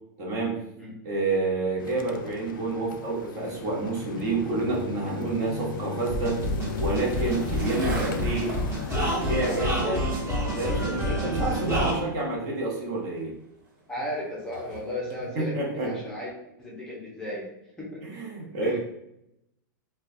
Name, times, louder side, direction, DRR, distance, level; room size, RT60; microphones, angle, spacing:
voice 1, 0.2-0.6 1.0-6.4 6.8-8.5 9.2-10.1 10.5-13.3 15.3-16.0 18.0-18.8, right 3 dB, 50° right, -3 dB, 1.0 m, -28 dB
sound 1, 1.8-9.6, left 4 dB, 75° left, 0.4 m, -36 dB
Skateboard, 4.7-15.2, right 2 dB, 85° right, 1.0 m, -43 dB
sound 2, 6.1-11.9, equal, 25° right, 1.0 m, -28 dB
voice 2, 13.9-16.3 16.6-17.5 17.8-18.0 18.6-18.8, left 1 dB, 5° left, -6 dB, 0.6 m, -35 dB
3.1 x 2.2 x 2.5 m, 0.81 s
supercardioid pair, 150°, 11 cm